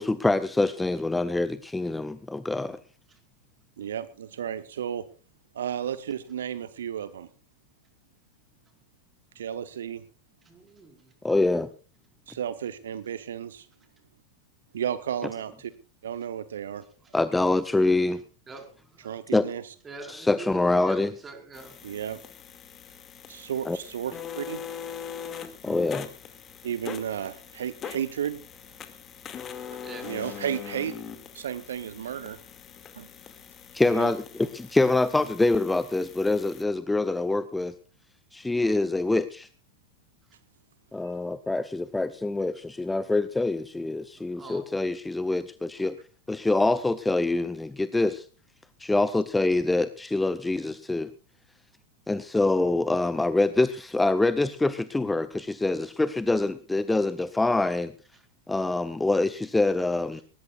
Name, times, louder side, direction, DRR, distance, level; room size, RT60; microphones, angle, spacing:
voice 1, 0.0-2.8 11.2-11.7 17.1-18.2 19.3-19.5 20.0-21.2 23.7-23.8 25.6-26.1 33.7-37.7 38.3-39.5 40.9-46.0 46.3-48.3 48.8-51.1 52.1-57.9 58.5-60.2, left 2 dB, 5° left, 14 dB, 0.7 m, -25 dB
voice 2, 3.8-5.0 5.5-7.3 9.3-10.0 12.3-13.7 14.7-15.7 16.0-16.8 19.0-19.7 21.8-22.2 23.3-24.6 26.6-28.4 29.9-31.0 31.3-32.4 33.0-33.1 33.8-34.1, right 9 dB, 65° right, 14 dB, 0.9 m, -33 dB
voice 3, 10.5-10.9 18.5-18.6 19.0-19.2 19.9-21.7 29.8-30.1 44.3-44.6, right 3 dB, 20° right, 4 dB, 4.9 m, -43 dB
sound 1, 21.5-36.6, left 8 dB, 25° left, 2.2 m, -42 dB
20.5 x 19.0 x 2.4 m, 0.35 s
figure-of-eight pair, 90°, 0 cm